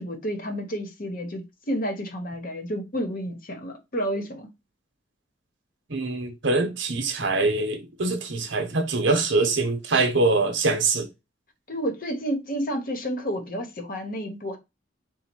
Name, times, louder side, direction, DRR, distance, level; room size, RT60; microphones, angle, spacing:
voice 1, 0.0-4.5 11.7-14.6, equal, 45° left, 0.9 m, -30 dB
voice 2, 5.9-11.1, right 3 dB, 70° right, 0.9 m, -24 dB
4.1 x 2.2 x 4.5 m
head